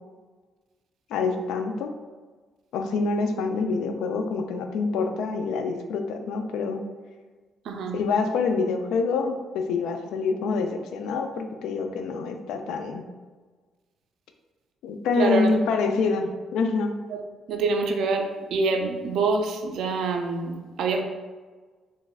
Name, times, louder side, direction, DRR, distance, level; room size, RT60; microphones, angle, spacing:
voice 1, 1.1-1.9 2.7-6.8 7.9-13.0 14.8-16.9, left 4 dB, 85° left, 6 dB, 0.3 m, -26 dB
voice 2, 15.2-15.5 17.1-17.2 17.5-21.0, right 4 dB, 75° right, 4 dB, 0.4 m, -26 dB
3.5 x 3.0 x 2.3 m, 1.4 s
cardioid pair, 90°, 0 cm